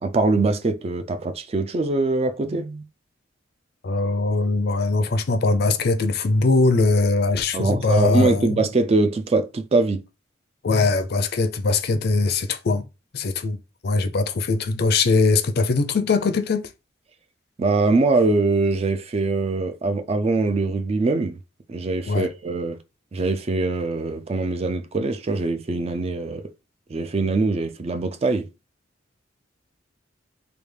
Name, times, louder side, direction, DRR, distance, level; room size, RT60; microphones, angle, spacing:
voice 1, 0.0-2.8 7.5-10.0 17.6-21.4 21.7-22.8 23.1-26.4 26.9-28.5, right 3 dB, 35° right, 0.4 m, -23 dB
voice 2, 3.8-8.6 10.6-12.8 13.1-16.7 22.1-22.3, left 3 dB, 55° left, 0.5 m, -21 dB
3.4 x 2.3 x 3.2 m
head